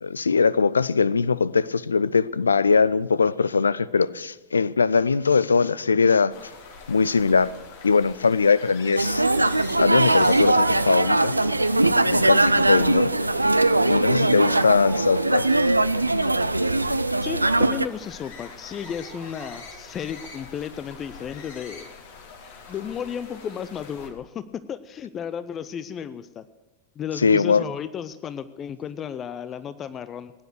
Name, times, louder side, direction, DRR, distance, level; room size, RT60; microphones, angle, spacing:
voice 1, 0.0-6.3 6.9-7.5 7.8-9.2 9.8-11.3 12.1-13.1 13.9-15.5 27.2-27.6, left 5 dB, 75° left, 20 dB, 0.4 m, -21 dB
sound 1, 6.3-24.1, left 5 dB, 55° left, 2.5 m, -44 dB
sound 2, 9.0-17.9, right 2 dB, 85° right, 0.4 m, -21 dB
sound 3, 10.4-12.2 14.4-15.6 15.9-16.0 16.8-17.1 17.4-18.4 18.8-20.0, right 7 dB, 35° right, 1.5 m, -43 dB
voice 2, 17.2-21.9 22.7-26.5 27.0-30.3, left 8 dB, 25° left, 13 dB, 0.5 m, -33 dB
18.0 x 10.0 x 6.6 m, 1.2 s
figure-of-eight pair, 90°, 0 cm